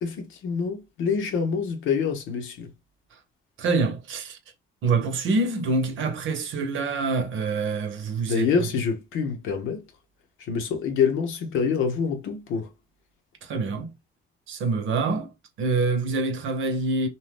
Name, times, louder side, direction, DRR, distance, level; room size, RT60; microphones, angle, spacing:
voice 1, 0.0-2.7 8.3-9.8 10.4-12.7, left 6 dB, 85° left, 0.8 m, -26 dB
voice 2, 3.6-4.4 4.8-8.5 13.4-13.9 14.5-15.3 15.6-17.1, right 3 dB, 80° right, 0.8 m, -26 dB
2.7 x 2.3 x 3.3 m
cardioid pair, 90°, 20 cm